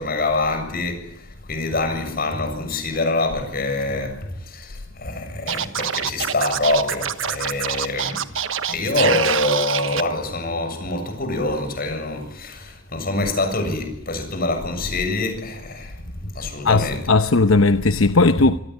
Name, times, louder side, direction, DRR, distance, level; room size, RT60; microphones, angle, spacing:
voice 1, 0.0-8.3 8.7-16.0 16.3-17.1, left 2 dB, 45° left, 7.5 m, -25 dB
Scratching (performance technique), 5.5-10.0, right 8 dB, 75° right, 1.4 m, -25 dB
voice 2, 16.6-18.6, left 3 dB, 90° left, 1.0 m, -17 dB
27.5 x 18.5 x 9.6 m
head